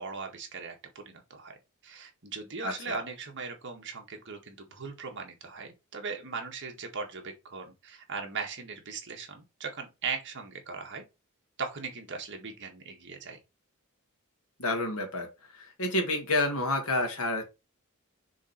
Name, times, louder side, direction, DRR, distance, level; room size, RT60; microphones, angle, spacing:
voice 1, 0.0-1.6 1.8-11.0 11.6-13.4, right 4 dB, 55° right, 1.7 m, -39 dB
voice 2, 2.6-3.0 14.6-15.3 15.5-17.4, left 2 dB, 70° left, 2.1 m, -29 dB
6.2 x 3.8 x 4.4 m
head